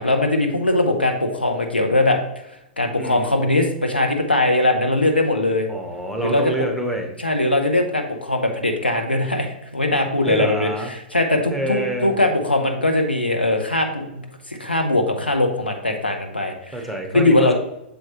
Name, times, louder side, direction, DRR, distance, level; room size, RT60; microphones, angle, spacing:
voice 1, 0.0-2.2 2.8-5.7 6.2-6.5 7.2-10.7 11.1-14.2 14.5-16.7 17.1-17.5, left 2 dB, 90° left, 4 dB, 1.0 m, -20 dB
voice 2, 3.0-3.3 5.7-7.1 10.3-10.9 11.5-12.2 16.7-17.5, right 1 dB, ahead, 1 dB, 0.9 m, -27 dB
6.9 x 4.5 x 3.0 m, 0.84 s
figure-of-eight pair, 110°, 5 cm